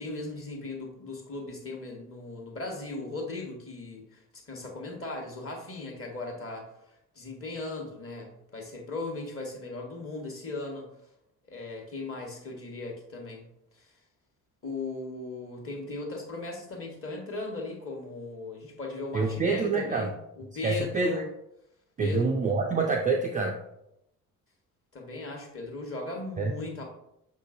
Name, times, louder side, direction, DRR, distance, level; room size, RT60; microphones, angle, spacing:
voice 1, 0.0-4.2 4.5-6.7 7.1-10.9 11.5-13.4 14.6-21.3 22.0-22.3 24.9-26.8, left 3 dB, 30° left, 1 dB, 1.3 m, -37 dB
voice 2, 19.1-20.1 20.6-21.2 22.0-23.6 26.4-26.5, right 4 dB, 20° right, 1 dB, 0.4 m, -26 dB
5.5 x 3.7 x 2.5 m, 0.80 s
figure-of-eight pair, 50°, 45 cm